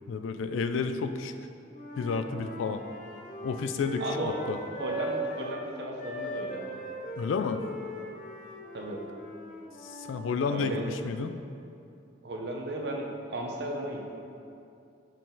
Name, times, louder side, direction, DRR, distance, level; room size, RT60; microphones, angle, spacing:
voice 1, 0.1-1.3 2.0-2.8 3.4-4.6 7.2-7.6 9.8-11.3, left 5 dB, 85° left, 8 dB, 0.3 m, -31 dB
Wind instrument woodwind instrument, 1.7-5.6 6.0-10.3, equal, 40° left, 0.8 m, -39 dB
voice 2, 4.0-4.3 4.8-6.7 8.7-9.0 10.5-10.9 12.2-14.0, right 1 dB, 60° right, 1 dB, 0.7 m, -35 dB
6.4 x 4.1 x 3.9 m, 2.6 s
head